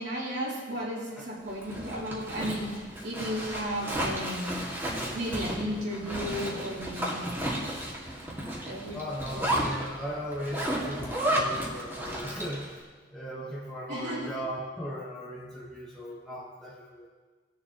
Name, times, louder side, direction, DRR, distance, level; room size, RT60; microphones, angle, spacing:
voice 1, 0.0-4.6 5.1-7.4 8.2-8.3 8.7-9.0 9.3-9.7 13.9-14.3, equal, 70° right, -6 dB, 3.4 m, -34 dB
Zipper (clothing), 1.5-12.7, right 1 dB, 15° right, 1.9 m, -33 dB
voice 2, 8.9-12.8 13.1-17.1, equal, 5° left, -7 dB, 1.2 m, -37 dB
18.5 x 7.1 x 3.0 m, 1.4 s
head